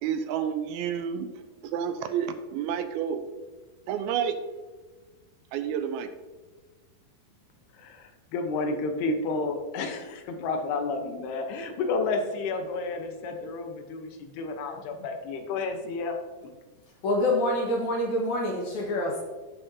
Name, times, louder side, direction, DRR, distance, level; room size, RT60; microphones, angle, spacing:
voice 1, 0.0-1.3 1.6-3.2 3.9-4.4 5.5-6.1, right 8 dB, 80° right, 8 dB, 2.4 m, -29 dB
voice 2, 7.7-16.2, left 3 dB, 80° left, 4 dB, 3.0 m, -31 dB
voice 3, 17.0-19.2, left 1 dB, 60° left, -1 dB, 2.3 m, -26 dB
16.0 x 5.7 x 2.8 m, 1.3 s
omnidirectional pair, 4.6 m